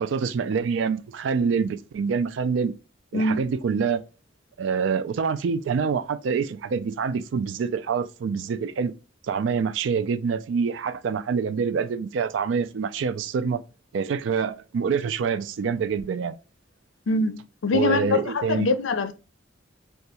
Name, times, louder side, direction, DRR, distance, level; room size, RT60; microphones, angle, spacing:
voice 1, 0.0-2.7 3.1-4.0 4.6-8.9 9.3-13.6 13.9-16.4 17.7-18.7, right 6 dB, 75° right, 0.3 m, -26 dB
voice 2, 17.1-17.4 17.6-19.1, left 3 dB, 85° left, 0.5 m, -23 dB
2.7 x 2.3 x 4.1 m
head